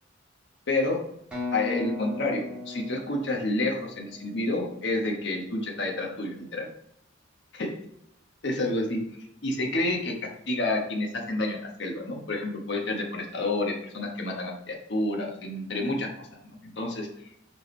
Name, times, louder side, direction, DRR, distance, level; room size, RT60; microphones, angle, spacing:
voice 1, 0.7-1.0 1.5-6.7 7.5-7.8 8.4-9.0 9.4-17.1, left 2 dB, 65° left, 0 dB, 1.2 m, -29 dB
sound 1, 1.3-5.1, left 3 dB, 5° right, 2.0 m, -38 dB
5.0 x 4.6 x 4.3 m, 0.77 s
head